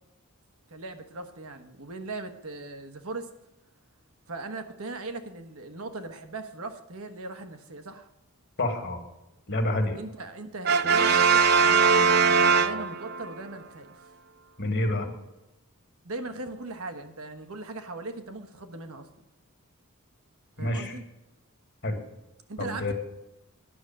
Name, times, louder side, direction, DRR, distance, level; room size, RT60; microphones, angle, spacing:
voice 1, 0.7-3.3 4.3-8.1 10.0-14.1 16.0-19.1 20.6-21.0 22.5-22.9, right 2 dB, 75° right, 8 dB, 1.2 m, -39 dB
voice 2, 8.6-9.0 9.5-10.0 14.6-15.1 20.6-20.9 21.8-22.0 22.6-22.9, left 1 dB, 50° left, 5 dB, 1.7 m, -28 dB
Brass instrument, 10.6-13.3, right 5 dB, 45° right, 0.4 m, -21 dB
10.0 x 6.6 x 8.6 m, 0.92 s
head